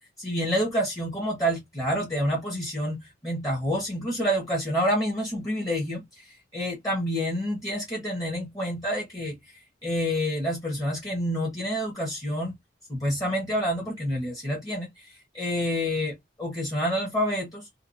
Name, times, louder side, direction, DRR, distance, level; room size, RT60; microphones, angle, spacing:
voice 1, 0.2-6.2 6.5-9.4 9.8-12.5 12.9-14.9 15.3-17.6, equal, 20° left, 1.0 m, -28 dB
2.9 x 2.2 x 2.5 m
head